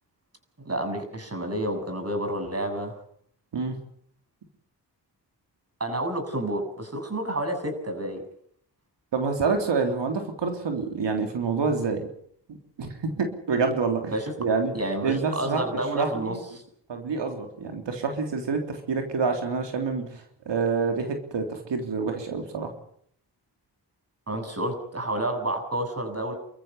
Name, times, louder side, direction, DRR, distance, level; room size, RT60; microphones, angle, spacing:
voice 1, 0.6-2.9 5.8-8.2 14.1-14.3 14.7-16.4 24.3-26.4, right 1 dB, 35° right, 6 dB, 7.4 m, -29 dB
voice 2, 9.1-12.1 12.8-14.1 14.4-14.7 15.0-15.7 16.0-16.4 16.9-22.7, right 4 dB, 85° right, 4 dB, 3.5 m, -27 dB
28.0 x 14.5 x 8.1 m, 0.65 s
cardioid pair, 55°, 42 cm